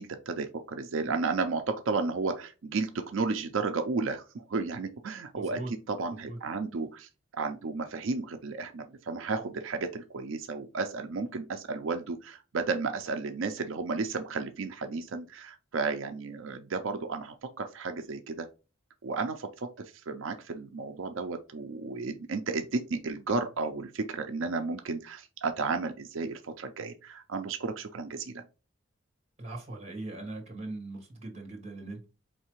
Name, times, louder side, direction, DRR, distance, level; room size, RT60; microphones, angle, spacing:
voice 1, 0.0-18.5 19.0-28.4, right 4 dB, 85° right, 7 dB, 0.5 m, -33 dB
voice 2, 5.3-5.7 6.1-6.4 29.4-32.0, right 2 dB, 35° right, 1 dB, 1.7 m, -40 dB
4.4 x 3.2 x 3.0 m, 0.32 s
head